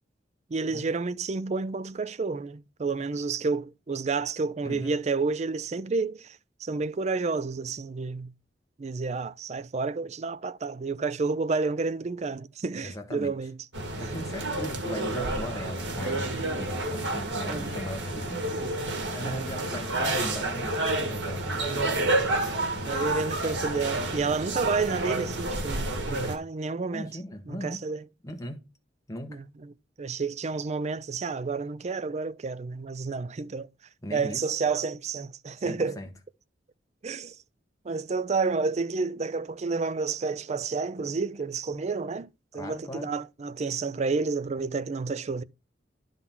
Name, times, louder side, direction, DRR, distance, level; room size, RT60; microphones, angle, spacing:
voice 1, 0.5-8.3 8.8-13.6 17.5-17.7 19.2-19.6 21.7-22.6 22.9-27.1 27.5-28.0 29.3-29.7 30.0-33.7 34.1-36.0 37.0-37.4 37.8-42.3 42.5-45.4, right 4 dB, 40° right, 0.4 m, -30 dB
voice 2, 4.6-4.9 12.8-13.3 14.0-18.4 19.1-20.8 21.1-21.5 26.9-27.8 28.2-28.6 29.1-29.4 34.0-34.4 35.6-36.1 42.5-43.1, equal, 20° left, 1.6 m, -38 dB
sound 1, 13.7-26.4, right 2 dB, 80° right, 1.7 m, -30 dB
11.0 x 3.9 x 5.8 m
head